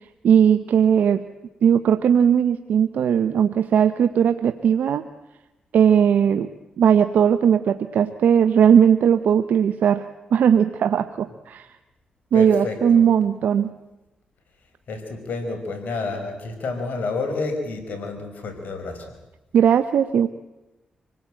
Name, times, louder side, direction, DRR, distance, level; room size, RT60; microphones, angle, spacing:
voice 1, 0.2-1.2 1.6-5.0 5.7-6.5 6.8-10.1 10.3-11.7 12.3-13.7 19.5-20.3, right 8 dB, 75° right, 10 dB, 0.9 m, -18 dB
voice 2, 12.3-13.1 14.9-19.1, left 3 dB, 70° left, 6 dB, 5.1 m, -29 dB
25.5 x 18.5 x 9.0 m, 1.0 s
supercardioid pair, 55°, 3 cm